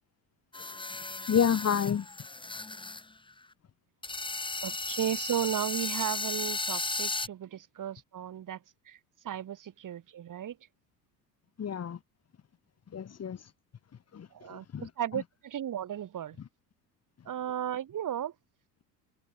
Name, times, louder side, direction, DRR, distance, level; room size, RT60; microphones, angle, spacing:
sound 1, 0.5-3.0 3.3-3.4 4.0-7.3, left 3 dB, 10° left, 1.8 m, -35 dB
voice 1, 1.3-2.1 11.6-12.0 12.9-13.5 14.1-15.2, left 8 dB, 30° left, 3.0 m, -30 dB
voice 2, 4.6-8.6 8.9-9.0 9.2-10.5 14.3-16.4 17.3-18.3, right 10 dB, 40° right, 3.9 m, -35 dB
hypercardioid pair, 65°, 47 cm